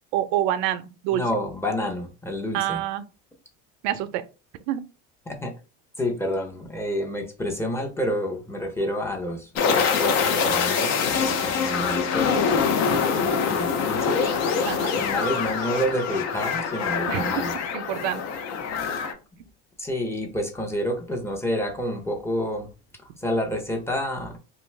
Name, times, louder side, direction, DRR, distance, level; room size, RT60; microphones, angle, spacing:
voice 1, 0.1-1.2 2.5-3.1 3.8-4.2 4.7-4.8 14.6-15.0 17.1-17.2 17.7-18.2, right 12 dB, 85° right, 0.5 m, -26 dB
voice 2, 1.1-2.8 5.3-5.5 6.0-12.7 13.0-14.2 15.0-17.5 18.7-18.9 19.8-22.7 23.0-24.4, equal, 10° left, 0.7 m, -29 dB
sound 1, 9.6-19.1, left 6 dB, 55° left, 0.7 m, -24 dB
2.6 x 2.2 x 3.1 m
supercardioid pair, 115°, 32 cm